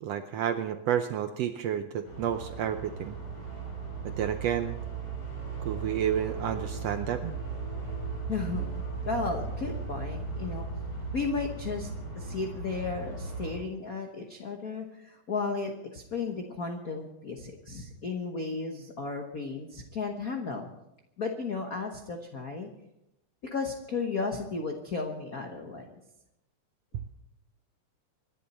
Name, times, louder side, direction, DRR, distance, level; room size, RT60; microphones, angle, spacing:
voice 1, 0.0-3.2 4.0-4.8 5.6-7.4, right 9 dB, 80° right, 8 dB, 1.5 m, -30 dB
sound 1, 2.0-13.5, right 4 dB, 50° left, 6.6 m, -37 dB
voice 2, 8.3-10.7 11.1-11.9 12.1-20.7 21.2-22.7 23.5-25.9, left 4 dB, 75° left, 3 dB, 0.8 m, -34 dB
26.0 x 11.0 x 4.3 m, 0.88 s
omnidirectional pair, 3.6 m